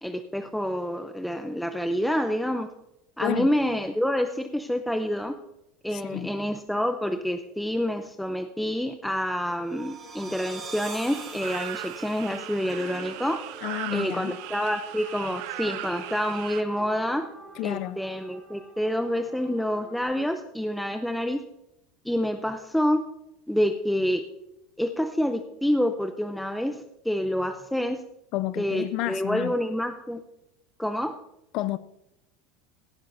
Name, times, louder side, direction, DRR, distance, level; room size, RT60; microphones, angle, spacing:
voice 1, 0.0-2.7 3.2-5.3 5.8-13.4 13.9-17.3 17.6-21.4 22.0-23.0 23.5-24.2 24.8-28.0 28.6-30.2 30.8-31.1, equal, ahead, 0.6 m, -27 dB
voice 2, 5.9-6.3 13.6-14.3 17.6-18.0 28.3-29.5 31.5-31.8, left 16 dB, 50° left, 0.4 m, -30 dB
sound 1, 9.5-20.0, right 4 dB, 15° right, 5.0 m, -44 dB
sound 2, 11.1-16.6, right 14 dB, 65° right, 0.8 m, -38 dB
17.5 x 10.5 x 2.7 m
supercardioid pair, 150°, 0 cm